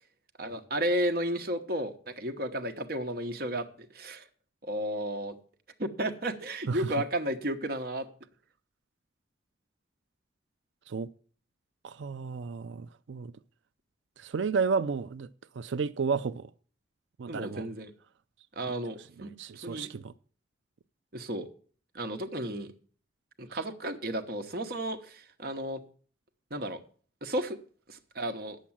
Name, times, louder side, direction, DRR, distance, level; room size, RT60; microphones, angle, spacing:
voice 1, 0.4-4.2 4.6-5.4 5.8-8.1 17.3-17.9 18.6-19.9 21.1-21.5 21.9-22.7 23.4-25.8 26.5-26.8 27.2-27.6 27.9-28.6, right 1 dB, 55° right, 1.1 m, -33 dB
voice 2, 11.8-13.3 14.2-15.3 15.6-16.5 17.2-17.7 19.2-20.1 23.5-23.6, right 5 dB, 80° right, 0.4 m, -32 dB
9.2 x 7.3 x 7.3 m
head